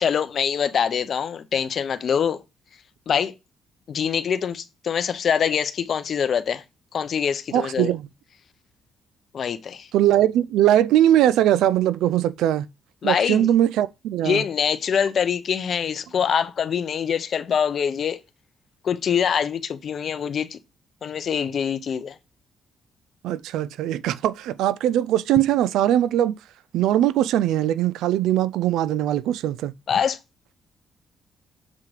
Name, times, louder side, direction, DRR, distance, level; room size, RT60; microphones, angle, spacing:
voice 1, 0.0-2.4 3.1-3.3 3.9-6.6 6.9-7.9 9.3-9.9 13.0-13.5 14.2-18.2 18.8-20.6 21.0-22.2 29.9-30.2, left 7 dB, 55° left, 0.8 m, -24 dB
voice 2, 7.5-8.0 9.9-12.7 13.0-14.4 23.2-26.3 26.7-29.7, right 12 dB, 85° right, 0.4 m, -20 dB
7.5 x 3.8 x 4.8 m
cardioid pair, 90°, 0 cm